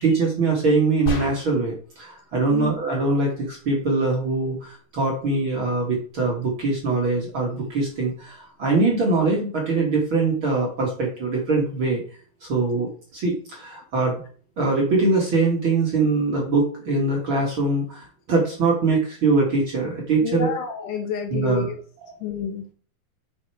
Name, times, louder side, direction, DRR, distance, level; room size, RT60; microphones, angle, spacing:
voice 1, 0.0-12.0 12.4-14.2 14.6-20.5 21.3-21.7 22.0-22.1, right 3 dB, 45° right, -2 dB, 1.8 m, -23 dB
sound 1, 1.1-1.8, equal, 45° left, 2.0 m, -29 dB
voice 2, 20.2-21.8 22.2-22.7, left 7 dB, 75° left, 5 dB, 2.0 m, -28 dB
8.1 x 5.5 x 4.6 m, 0.43 s
omnidirectional pair, 4.2 m